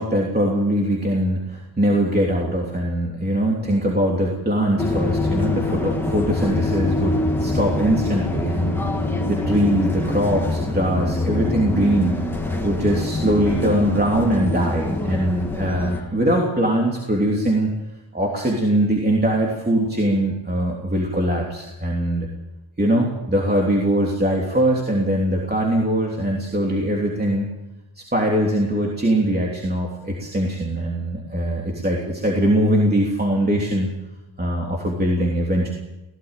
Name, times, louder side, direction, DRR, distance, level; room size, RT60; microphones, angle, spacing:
voice 1, 0.0-8.8 9.3-12.2 12.6-17.7 18.1-22.3 22.8-27.5 28.0-33.9 34.4-35.7, right 1 dB, 20° right, -2 dB, 3.2 m, -21 dB
sound 1, 4.8-16.0, left 2 dB, 5° left, 2.9 m, -24 dB
17.5 x 16.5 x 9.1 m, 1.0 s
wide cardioid pair, 120°, 47 cm